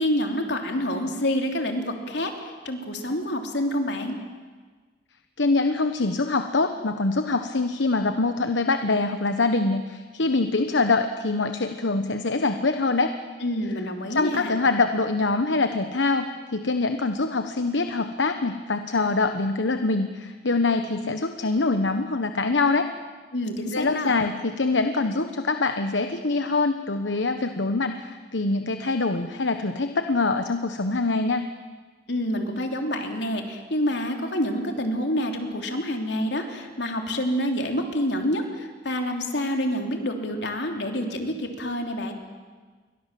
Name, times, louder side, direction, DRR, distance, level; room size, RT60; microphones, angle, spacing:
voice 1, 0.0-4.2 13.4-14.6 23.3-24.1 32.1-42.1, equal, 70° left, 4 dB, 3.5 m, -27 dB
voice 2, 5.4-13.1 14.1-16.3 16.5-22.9 23.7-31.5, left 3 dB, 85° left, 8 dB, 1.1 m, -24 dB
29.0 x 23.5 x 7.7 m, 1.4 s
head